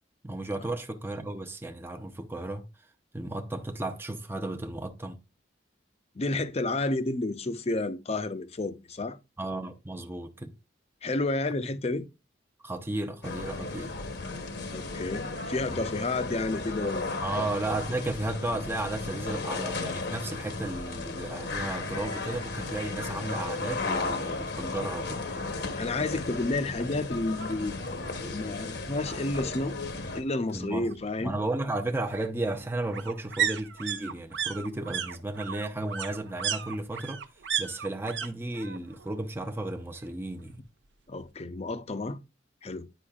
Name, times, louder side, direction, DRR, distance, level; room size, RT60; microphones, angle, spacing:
voice 1, 0.2-2.7 3.1-5.2 9.4-10.5 12.6-13.9 17.2-25.2 30.5-30.9 31.2-37.2 37.6-40.6, right 2 dB, 10° right, 0.6 m, -34 dB
voice 2, 6.2-9.2 11.0-12.1 14.7-17.0 17.4-17.5 25.7-27.8 28.3-29.8 30.1-31.4 41.1-42.2 42.6-42.9, left 2 dB, 35° left, 0.6 m, -30 dB
sound 1, 13.2-30.2, left 3 dB, 60° left, 0.9 m, -35 dB
sound 2, 27.4-27.5 27.9-28.0 28.2-29.2 30.5-38.3 38.5-39.1 39.4-40.4 40.7-40.8, right 8 dB, 70° right, 0.7 m, -35 dB
10.0 x 5.3 x 2.4 m
head